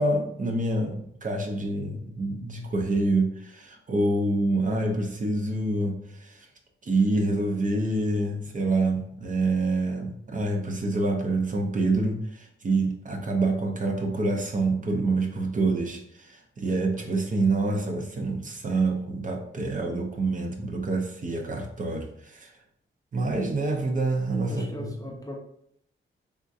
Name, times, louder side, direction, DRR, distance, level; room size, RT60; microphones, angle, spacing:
voice 1, 0.0-6.5 6.8-22.5 23.1-24.9, right 2 dB, 40° right, 2 dB, 0.6 m, -27 dB
voice 2, 24.5-25.4, equal, 15° left, -1 dB, 0.5 m, -38 dB
4.2 x 3.6 x 2.6 m, 0.71 s
wide cardioid pair, 160°, 21 cm